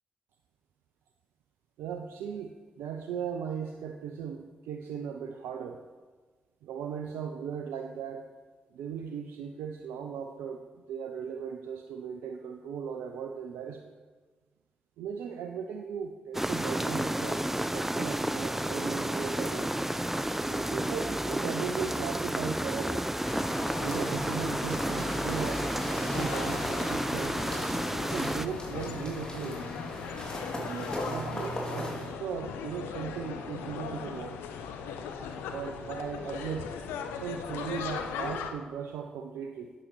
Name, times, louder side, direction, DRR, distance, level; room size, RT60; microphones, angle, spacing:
voice 1, 1.8-5.8 6.6-8.3 8.7-10.6 10.9-13.9 15.0-17.4 17.7-19.7 20.5-23.1 23.8-27.4 28.1-29.6 30.6-34.4 35.5-36.7 37.1-39.7, right 7 dB, 80° right, 5 dB, 0.6 m, -38 dB
sound 1, 16.3-28.5, right 1 dB, 10° right, 0.6 m, -31 dB
sound 2, 23.2-32.1, equal, 20° left, 3.9 m, -37 dB
sound 3, 24.7-38.5, left 6 dB, 85° left, 0.8 m, -39 dB
8.6 x 8.5 x 6.8 m, 1.4 s
hypercardioid pair, 40°, 4 cm